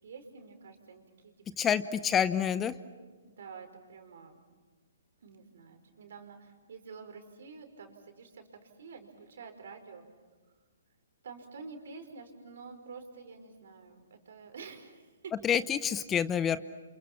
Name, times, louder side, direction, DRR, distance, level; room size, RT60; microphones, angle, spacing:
voice 1, 0.0-2.1 3.2-4.4 5.2-8.4 8.8-10.0 11.2-15.5, right 5 dB, 65° right, 6 dB, 5.1 m, -49 dB
voice 2, 1.6-2.7 15.4-16.6, left 8 dB, 15° left, 15 dB, 0.8 m, -27 dB
29.5 x 27.5 x 5.9 m, 1.4 s
hypercardioid pair, 130°, 0 cm